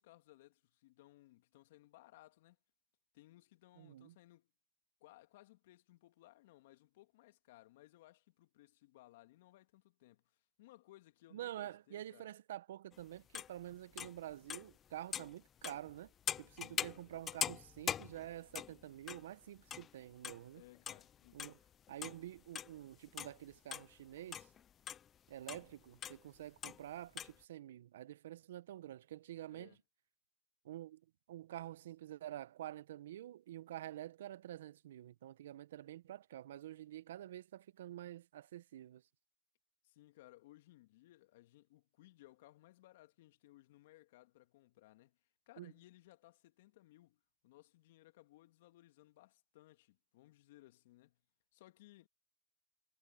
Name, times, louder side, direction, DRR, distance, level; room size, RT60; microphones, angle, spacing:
voice 1, 0.0-2.6 3.1-4.5 5.0-12.3 16.5-17.0 20.5-21.5 29.5-29.8 39.8-45.2 45.5-51.2 51.5-52.1, left 17 dB, 75° left, 2.1 m, -62 dB
voice 2, 3.8-4.2 11.3-20.6 21.3-21.6 21.9-24.5 25.3-29.7 30.6-31.0 31.3-39.0 45.6-45.7, right 13 dB, 80° right, 1.1 m, -48 dB
sound 1, 12.9-13.0 13.3-13.5 13.9-14.7 15.1-19.9 20.2-20.4 20.7-21.6 21.9-22.8 23.1-25.1 25.5-25.7 26.0-26.2 26.6-26.8 27.2-27.4, left 9 dB, 45° left, 0.3 m, -42 dB
hypercardioid pair, 65°, 0 cm